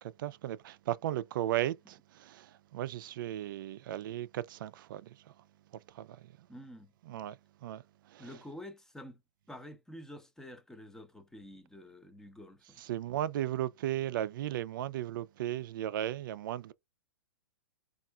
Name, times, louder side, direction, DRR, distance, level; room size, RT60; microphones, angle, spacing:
voice 1, 0.0-5.3 5.9-6.3 7.1-7.4 7.6-7.8 8.1-8.3 12.9-16.7, right 13 dB, 65° right, 0.4 m, -36 dB
voice 2, 6.5-6.9 8.2-9.2 9.5-12.8, left 1 dB, 5° left, 0.7 m, -48 dB
4.2 x 2.5 x 2.2 m
hypercardioid pair, 120°, 12 cm